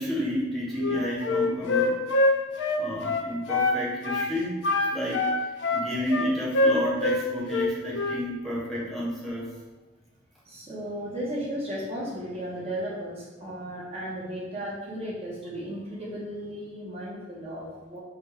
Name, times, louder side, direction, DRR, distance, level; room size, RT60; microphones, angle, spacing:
voice 1, 0.0-2.0 2.8-4.6 4.9-5.2 5.7-9.5, equal, ahead, -7 dB, 0.9 m, -30 dB
Wind instrument woodwind instrument, 0.8-3.8 4.0-4.3 4.6-7.2 7.5-8.2, left 2 dB, 70° left, 0.4 m, -24 dB
voice 2, 10.4-18.0, equal, 35° right, -6 dB, 0.8 m, -35 dB
3.7 x 2.2 x 4.4 m, 1.2 s
head